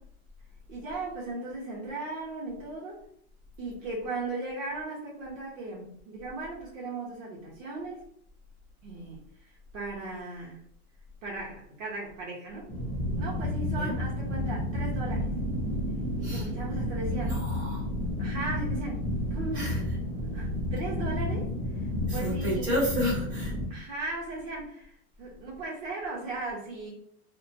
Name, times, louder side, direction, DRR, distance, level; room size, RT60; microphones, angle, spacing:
voice 1, 0.7-3.0 3.6-8.0 8.8-10.6 11.2-12.7 13.1-15.3 16.2-17.4 18.2-19.0 19.3-19.7 20.3-22.9 23.7-26.9, right 2 dB, 60° right, -4 dB, 1.0 m, -37 dB
sound 1, 12.7-23.6, left 1 dB, 5° left, 0.5 m, -31 dB
voice 2, 17.1-17.8 19.5-19.8 22.1-23.5, equal, 20° right, -8 dB, 1.4 m, -31 dB
2.8 x 2.2 x 2.7 m, 0.68 s
supercardioid pair, 155°, 44 cm